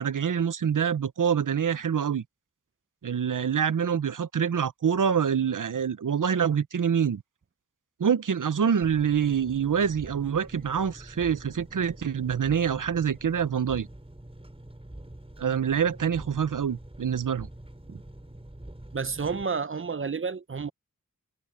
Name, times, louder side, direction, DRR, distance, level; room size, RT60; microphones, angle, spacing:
voice 1, 0.0-2.2 3.0-7.2 8.0-13.9 15.4-17.5, right 7 dB, 80° right, 0.9 m, -26 dB
Engine, 8.8-19.4, right 1 dB, 20° right, 5.0 m, -46 dB
voice 2, 18.9-20.7, right 5 dB, 40° right, 0.8 m, -30 dB
cardioid pair, 45°, 31 cm